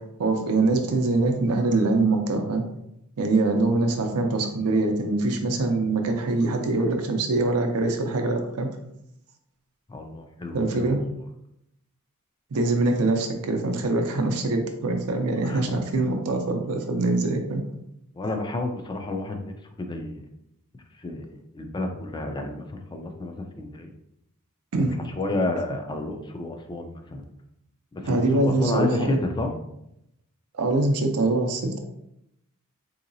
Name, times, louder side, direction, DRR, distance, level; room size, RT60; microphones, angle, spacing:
voice 1, 0.2-2.6 3.2-8.7 10.5-11.0 12.5-17.6 24.7-24.9 28.0-29.2 30.5-31.8, right 2 dB, 80° right, 4 dB, 0.5 m, -23 dB
voice 2, 9.9-10.9 15.4-15.6 18.2-20.2 21.0-21.3 21.5-23.9 24.7-24.8 25.2-27.2 27.9-29.5, left 2 dB, 20° left, 4 dB, 0.4 m, -30 dB
3.8 x 2.8 x 2.6 m, 0.80 s
head